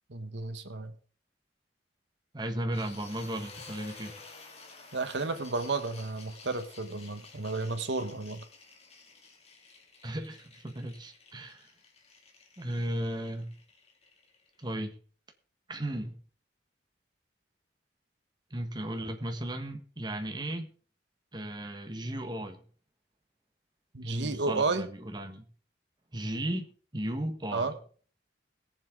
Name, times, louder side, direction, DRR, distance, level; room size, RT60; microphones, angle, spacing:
voice 1, 0.1-0.9 4.9-8.4 23.9-24.9 27.5-27.7, right 3 dB, 90° right, 9 dB, 1.4 m, -32 dB
voice 2, 2.3-4.1 10.0-11.7 12.6-13.5 14.6-15.0 15.7-16.1 18.5-20.7 21.3-22.6 24.0-25.4 26.1-27.8, right 1 dB, 25° right, 5 dB, 1.5 m, -35 dB
sound 1, 2.7-14.7, left 4 dB, 35° left, 2.5 m, -52 dB
20.0 x 7.5 x 3.8 m, 0.41 s
head